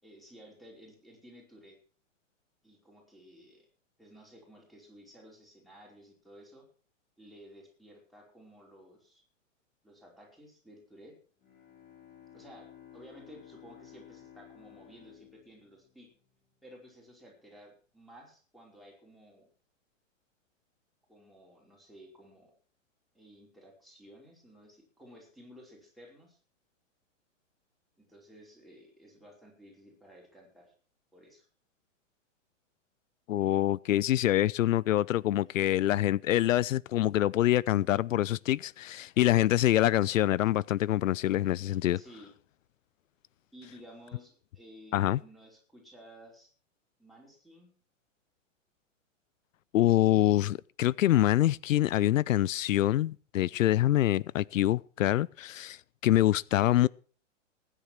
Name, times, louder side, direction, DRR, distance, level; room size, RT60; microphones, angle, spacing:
voice 1, 0.0-1.8 2.6-3.7 4.0-6.7 7.2-9.2 9.8-11.1 12.3-16.1 16.6-19.5 21.1-22.5 23.1-26.4 28.0-30.7 31.1-31.5 41.9-42.3 43.5-46.5 47.0-47.7, equal, ahead, 5.0 m, -54 dB
Bowed string instrument, 11.4-16.6, left 10 dB, 25° left, 5.5 m, -54 dB
voice 2, 33.3-42.0 44.9-45.2 49.7-56.9, left 14 dB, 80° left, 0.5 m, -25 dB
19.0 x 10.0 x 4.6 m
hypercardioid pair, 140°, 39 cm